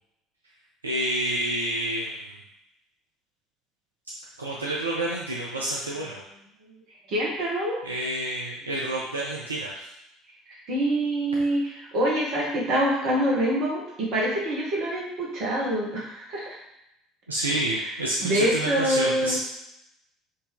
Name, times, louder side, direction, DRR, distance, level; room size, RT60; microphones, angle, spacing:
voice 1, 0.8-2.3 4.4-6.2 7.8-9.9 17.3-19.4, right 1 dB, 80° right, -3 dB, 0.4 m, -29 dB
voice 2, 7.1-7.8 10.7-16.5 17.5-17.9 18.2-19.4, right 1 dB, 50° right, -3 dB, 1.4 m, -25 dB
4.3 x 2.8 x 3.4 m, 0.81 s
figure-of-eight pair, 60°, 0 cm